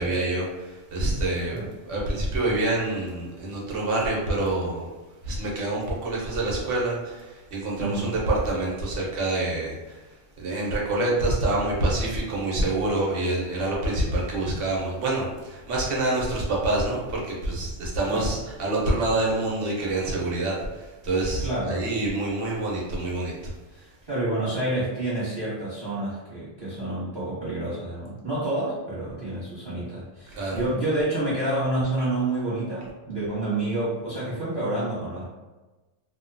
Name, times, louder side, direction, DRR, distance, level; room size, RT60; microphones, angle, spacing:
voice 1, 0.0-1.6 1.9-4.9 5.2-10.0 10.4-23.5 30.3-30.6, right 2 dB, 70° right, -3 dB, 1.0 m, -26 dB
voice 2, 7.8-8.1 18.1-18.3 21.4-21.8 23.7-35.2, right 2 dB, 20° right, -10 dB, 1.0 m, -28 dB
2.7 x 2.2 x 2.5 m, 1.2 s
omnidirectional pair, 1.3 m